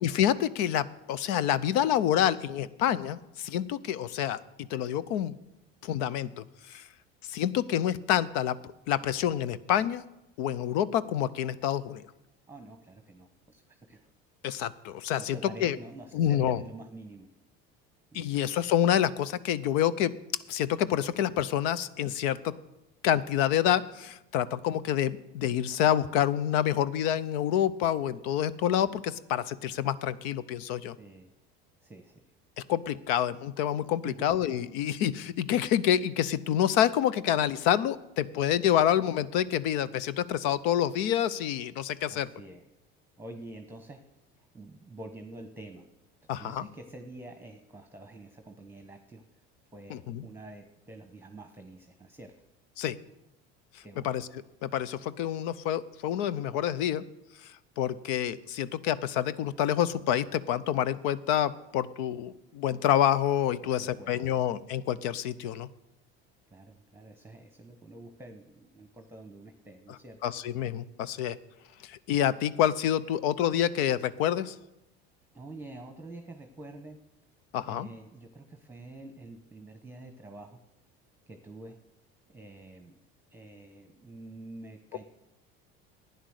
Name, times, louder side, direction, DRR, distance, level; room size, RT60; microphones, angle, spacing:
voice 1, 0.0-4.4 4.7-5.3 5.8-6.4 6.7-6.8 7.3-8.6 8.9-10.0 10.4-12.0 14.4-15.8 16.1-16.6 18.1-20.1 20.5-22.5 23.0-31.0 32.7-42.3 46.3-46.7 49.9-50.2 52.8-53.0 54.0-54.3 54.6-57.0 57.8-65.7 70.2-71.4 71.9-74.5 77.5-77.9, left 10 dB, 75° left, 18 dB, 0.7 m, -27 dB
voice 2, 12.5-14.1 14.8-17.3 18.1-18.3 31.0-31.3 31.8-32.2 34.0-34.2 42.1-42.6 43.2-44.1 44.3-45.9 46.4-49.2 49.7-52.3 53.8-54.2 63.6-64.3 66.5-70.2 75.3-77.0 77.6-80.6 81.3-81.8 82.3-83.0 83.3-85.0, right 2 dB, 5° right, 5 dB, 1.1 m, -47 dB
11.5 x 9.5 x 6.5 m, 0.90 s
supercardioid pair, 90°, 30 cm